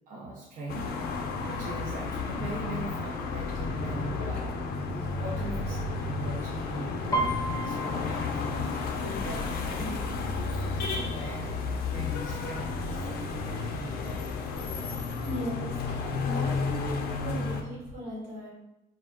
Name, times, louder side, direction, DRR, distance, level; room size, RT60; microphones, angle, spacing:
voice 1, 0.1-0.9 1.4-4.6 4.9-14.5, right 2 dB, 50° right, -4 dB, 0.6 m, -41 dB
sound 1, 0.7-17.6, left 4 dB, 65° left, 0.4 m, -32 dB
Piano, 7.1-10.8 11.1-11.5 11.9-12.5 13.1-13.2 13.4-14.5 14.8-14.9, right 2 dB, 20° left, 0.5 m, -35 dB
voice 2, 15.2-18.5, equal, 85° right, -5 dB, 1.3 m, -38 dB
2.3 x 2.1 x 3.5 m, 0.92 s
cardioid pair, 110°, 17 cm